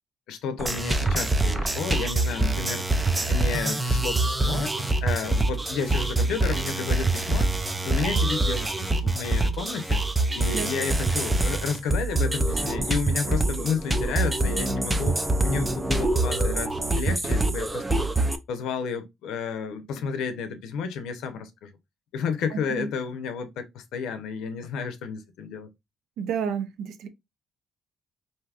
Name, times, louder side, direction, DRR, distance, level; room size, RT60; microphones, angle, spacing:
voice 1, 0.3-2.8 3.2-4.7 5.0-7.5 7.8-10.0 10.3-17.8 18.5-21.7 22.1-25.7, left 6 dB, 90° left, 0.6 m, -31 dB
sound 1, 0.6-18.4, right 2 dB, 15° right, 0.4 m, -25 dB
voice 2, 22.5-22.9 26.2-27.1, right 7 dB, 85° right, 0.4 m, -30 dB
3.4 x 2.6 x 2.3 m
cardioid pair, 90°, 0 cm